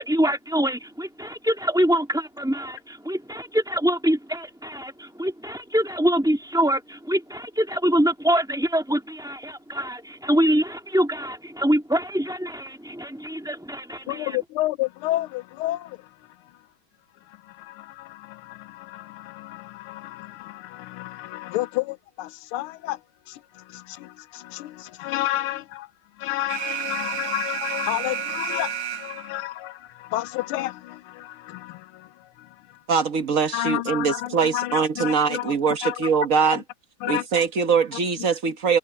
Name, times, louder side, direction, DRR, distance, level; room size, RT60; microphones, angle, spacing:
voice 1, 0.0-14.4, equal, ahead, 1.6 m, -24 dB
voice 2, 14.1-16.6 17.3-25.9 26.2-32.8 33.5-36.1 36.4-36.6 37.0-37.2 38.2-38.3, left 16 dB, 80° left, 1.5 m, -31 dB
Alarm, 26.5-29.5, right 10 dB, 90° right, 2.0 m, -31 dB
voice 3, 32.9-36.6 37.1-38.8, right 5 dB, 45° right, 1.3 m, -22 dB
omnidirectional pair, 2.4 m